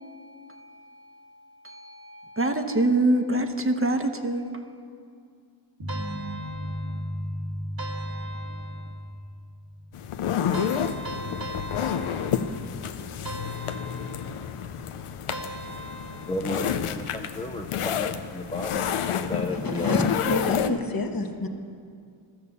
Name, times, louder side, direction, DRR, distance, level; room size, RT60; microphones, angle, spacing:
voice 1, 1.6-4.6, right 2 dB, 25° right, 4 dB, 0.8 m, -25 dB
sound 1, 5.8-10.0, equal, 85° right, 2.2 m, -35 dB
sound 2, 5.9-7.2 7.8-9.1 10.5-12.7 13.2-14.5 15.3-16.6, right 2 dB, 45° right, 1.1 m, -39 dB
sound 3, 9.9-20.7, left 8 dB, 90° left, 0.6 m, -29 dB
voice 2, 16.3-20.1, left 1 dB, 15° left, 2 dB, 0.6 m, -33 dB
voice 3, 19.4-21.5, left 3 dB, 45° left, 5 dB, 1.0 m, -28 dB
13.0 x 6.7 x 6.9 m, 2.3 s
cardioid pair, 45°, 49 cm